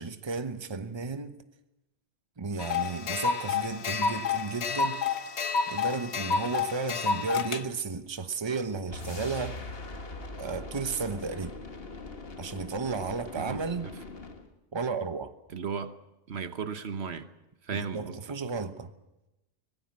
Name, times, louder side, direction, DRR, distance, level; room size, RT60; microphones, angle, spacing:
voice 1, 0.0-1.3 2.4-5.0 5.7-9.6 10.4-11.6 12.4-13.9 14.7-15.3 17.7-18.9, right 4 dB, 25° right, 1.0 m, -33 dB
sound 1, 2.6-7.6, left 5 dB, 80° left, 1.3 m, -29 dB
sound 2, 8.9-14.5, left 3 dB, 60° left, 1.9 m, -41 dB
voice 2, 13.4-13.9 15.5-16.0 16.3-17.3 17.7-18.2, right 6 dB, 75° right, 1.4 m, -35 dB
24.5 x 18.0 x 7.5 m
omnidirectional pair, 1.1 m